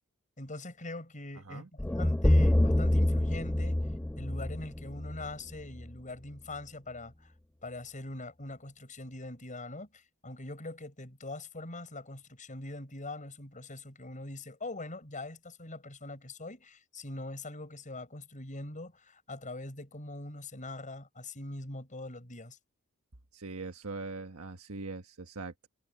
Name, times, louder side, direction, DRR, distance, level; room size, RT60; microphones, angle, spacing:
voice 1, 0.4-22.6, left 2 dB, 35° left, 7.2 m, -43 dB
sound 1, 1.8-5.9, left 1 dB, 5° left, 0.4 m, -27 dB
voice 2, 23.3-25.7, right 3 dB, 70° right, 1.5 m, -41 dB
head